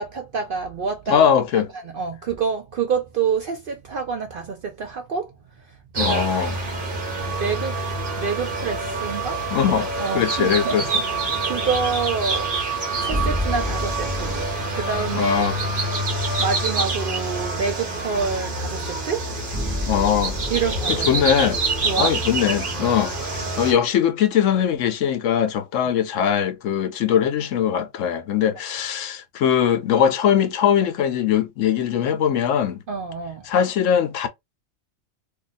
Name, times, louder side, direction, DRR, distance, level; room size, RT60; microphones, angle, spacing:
voice 1, 0.0-1.2 1.9-5.3 6.0-6.6 7.4-7.8 8.2-9.4 9.8-10.8 11.4-12.5 13.0-14.4 14.7-15.5 16.4-19.3 20.5-21.3 21.8-22.1 32.9-33.5, right 5 dB, 60° right, 0.6 m, -27 dB
voice 2, 1.1-1.7 6.0-6.6 9.5-11.0 15.1-15.6 19.8-20.4 20.9-21.6 22.0-32.8 33.4-34.3, left 8 dB, 75° left, 0.9 m, -21 dB
sound 1, 5.9-23.7, right 3 dB, 45° right, 1.1 m, -26 dB
sound 2, 13.1-15.3 19.5-22.8, left 1 dB, 10° right, 0.9 m, -30 dB
2.7 x 2.4 x 4.0 m
omnidirectional pair, 1.4 m